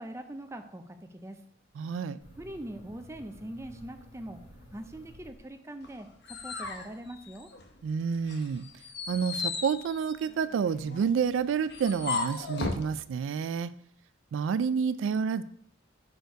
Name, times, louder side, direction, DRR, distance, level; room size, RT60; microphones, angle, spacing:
voice 1, 0.0-1.4 2.4-4.4 4.7-7.5, right 1 dB, 15° right, 6 dB, 0.5 m, -42 dB
voice 2, 1.8-2.2 7.8-8.7 9.1-13.7 14.3-15.4, right 6 dB, 75° right, 15 dB, 0.3 m, -29 dB
sound 1, 2.2-6.0, equal, 90° left, 2.5 m, -53 dB
sound 2, 5.8-7.8 8.2-12.9, left 4 dB, 55° left, 0.8 m, -36 dB
6.5 x 4.5 x 4.6 m, 0.68 s
head